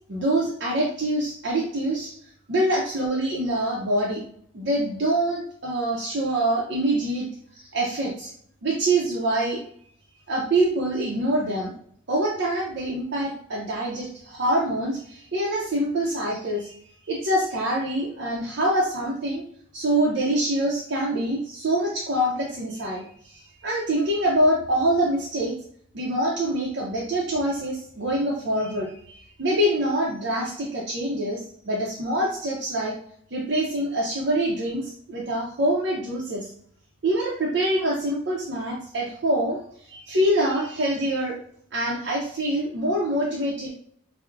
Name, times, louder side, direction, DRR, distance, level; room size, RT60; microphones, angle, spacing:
voice 1, 0.1-2.1 2.5-4.2 4.5-7.3 7.5-8.3 8.6-9.6 10.3-11.7 12.1-16.8 17.1-19.4 19.7-25.5 25.9-32.9 33.3-36.5 37.0-39.6 39.9-41.4 41.7-43.7, right 1 dB, 55° right, -4 dB, 0.5 m, -25 dB
4.4 x 2.0 x 2.4 m, 0.62 s
head